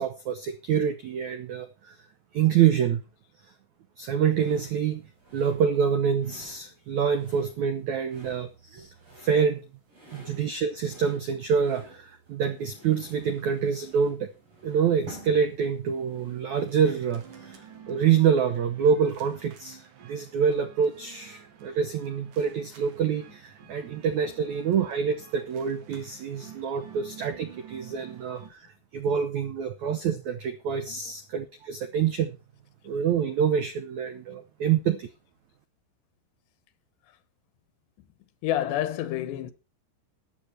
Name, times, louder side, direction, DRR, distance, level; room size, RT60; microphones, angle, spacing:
voice 1, 0.0-2.0 2.3-3.0 4.0-5.1 5.3-9.6 10.1-14.3 14.6-28.7 28.9-32.4 32.8-35.1, right 7 dB, 90° right, 1.6 m, -26 dB
sound 1, 4.3-17.8, right 2 dB, 30° right, 6.5 m, -51 dB
sound 2, 16.5-28.5, right 9 dB, 60° right, 3.1 m, -49 dB
voice 2, 34.6-35.0 38.4-39.5, left 12 dB, 85° left, 3.4 m, -31 dB
13.5 x 9.8 x 4.4 m
omnidirectional pair, 4.8 m